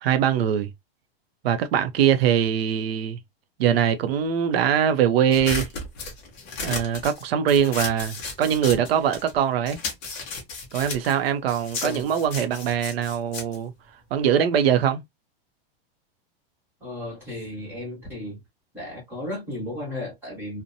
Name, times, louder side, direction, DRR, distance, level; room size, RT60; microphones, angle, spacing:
voice 1, 0.0-0.7 1.4-3.2 3.6-5.7 6.6-9.8 10.7-13.7 14.1-15.1, right 9 dB, 70° right, 0.6 m, -22 dB
sound 1, 5.3-9.4 9.7-14.5, left 4 dB, 20° left, 0.5 m, -34 dB
voice 2, 11.8-12.1 16.8-18.4 18.7-20.6, left 1 dB, 5° right, 1.1 m, -34 dB
2.7 x 2.1 x 2.5 m
supercardioid pair, 175°, 31 cm